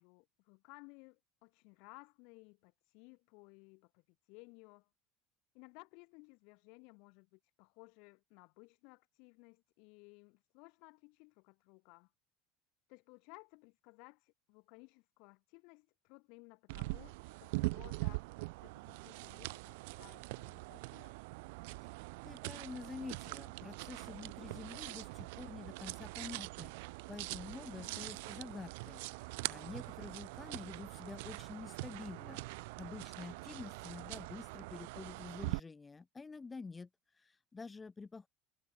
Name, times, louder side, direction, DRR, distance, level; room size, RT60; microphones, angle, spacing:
voice 1, 0.0-4.0 4.3-4.9 5.5-12.1 12.9-21.1 27.6-28.1, left 32 dB, 65° left, 0.8 m, -59 dB
sound 1, 16.7-35.6, right 26 dB, 80° right, 0.5 m, -43 dB
voice 2, 22.3-32.4 32.8-36.9 37.2-38.3, left 4 dB, 15° left, 0.4 m, -48 dB
cardioid pair, 160°, 0 cm